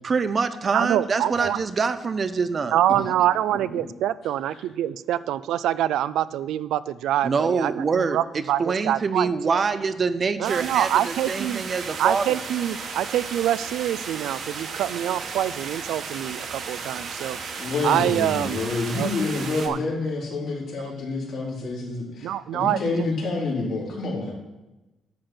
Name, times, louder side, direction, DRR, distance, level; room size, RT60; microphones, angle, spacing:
voice 1, 0.0-2.7 7.2-8.2 8.6-12.2, right 5 dB, 30° right, 11 dB, 0.5 m, -25 dB
voice 2, 0.7-1.6 2.7-9.6 10.4-11.6 12.0-17.4 17.8-18.6 19.0-19.1 19.4-19.8 22.2-23.1, right 12 dB, 90° right, 16 dB, 0.4 m, -25 dB
sound 1, 10.4-19.7, right 5 dB, 55° right, 1.3 m, -35 dB
voice 3, 17.6-24.3, left 3 dB, 65° left, -4 dB, 3.6 m, -28 dB
11.5 x 4.4 x 7.8 m, 1.0 s
cardioid pair, 150°, 0 cm